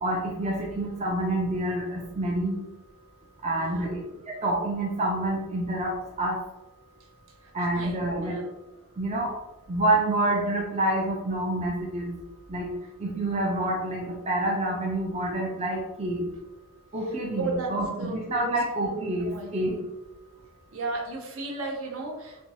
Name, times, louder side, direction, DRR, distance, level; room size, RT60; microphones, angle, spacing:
voice 1, 0.0-2.6 3.4-4.0 4.3-6.4 7.5-8.4 9.0-9.3 9.7-12.1 12.5-12.7 13.0-16.3 16.9-19.8, right 1 dB, 30° right, -2 dB, 0.4 m, -27 dB
voice 2, 3.5-4.1 7.4-8.4 17.4-18.6 18.9-19.5 20.7-22.4, right 3 dB, 70° right, 0 dB, 0.8 m, -35 dB
4.4 x 2.2 x 2.7 m, 1.1 s
head